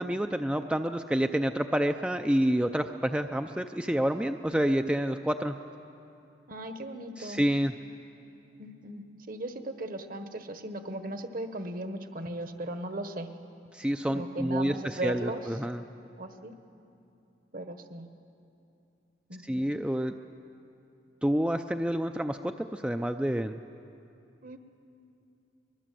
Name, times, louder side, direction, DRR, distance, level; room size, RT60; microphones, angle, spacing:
voice 1, 0.0-5.6 7.2-7.7 13.7-15.8 19.5-20.1 21.2-23.6, equal, 5° right, 7 dB, 0.4 m, -28 dB
voice 2, 6.5-7.4 8.6-13.3 14.1-15.4 16.2-16.5 17.5-18.1 19.3-19.6 24.4-24.6, right 1 dB, 55° right, 8 dB, 1.3 m, -37 dB
23.5 x 20.5 x 7.6 m, 2.7 s
head